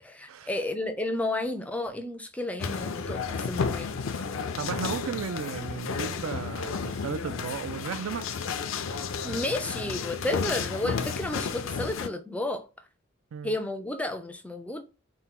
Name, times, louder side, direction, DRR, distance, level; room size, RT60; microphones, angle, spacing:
voice 1, 0.0-3.9 9.2-12.7 13.4-14.8, left 1 dB, 5° left, 0.4 m, -32 dB
sound 1, 2.6-12.1, left 5 dB, 70° left, 0.4 m, -32 dB
voice 2, 4.6-8.3 13.3-13.5, right 6 dB, 85° right, 0.4 m, -34 dB
4.4 x 2.1 x 3.6 m
head